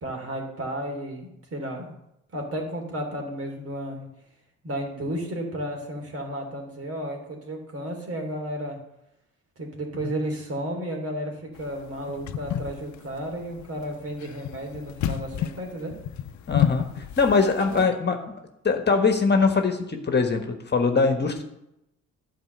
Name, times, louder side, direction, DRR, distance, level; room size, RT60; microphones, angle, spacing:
voice 1, 0.0-1.9 2.3-4.1 4.6-8.8 9.6-15.9 17.7-17.8, right 1 dB, 50° right, 2 dB, 3.2 m, -33 dB
sound 1, 11.6-17.8, left 10 dB, 70° left, 0.7 m, -30 dB
voice 2, 16.5-18.3 18.6-21.4, left 4 dB, 35° left, 6 dB, 1.4 m, -22 dB
11.0 x 4.6 x 8.0 m, 0.84 s
cardioid pair, 90°, 30 cm